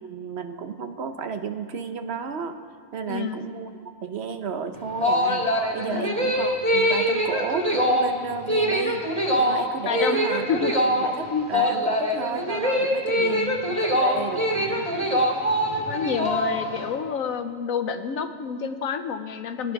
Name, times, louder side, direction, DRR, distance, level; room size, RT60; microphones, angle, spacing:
voice 1, 0.0-2.6 2.9-5.4 5.7-9.0 9.4-10.5 10.8-14.5, right 5 dB, 55° right, 8 dB, 0.9 m, -33 dB
voice 2, 3.1-3.4 5.9-6.2 8.5-8.6 9.9-10.2 10.5-10.7 11.3-11.5 13.2-13.6 14.6-14.8 15.9-19.7, left 7 dB, 85° left, 8 dB, 1.2 m, -29 dB
sound 1, 4.7-16.9, equal, 25° right, 2.6 m, -23 dB
18.5 x 9.9 x 5.9 m, 2.1 s
omnidirectional pair, 1.4 m